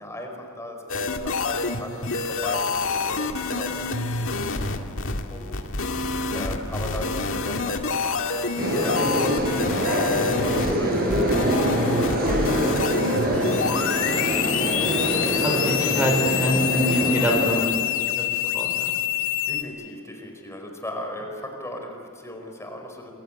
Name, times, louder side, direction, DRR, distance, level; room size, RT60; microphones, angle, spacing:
voice 1, 0.0-5.6 6.3-14.6 19.2-23.1, left 1 dB, 15° left, 2 dB, 4.7 m, -39 dB
sound 1, 0.9-19.6, left 6 dB, 65° left, 2.0 m, -27 dB
sound 2, 8.6-17.6, equal, 45° right, 7.9 m, -24 dB
voice 2, 15.4-17.7 18.2-18.3 18.5-18.9, equal, 10° right, 2 dB, 4.7 m, -24 dB
28.0 x 23.0 x 8.9 m, 2.6 s
head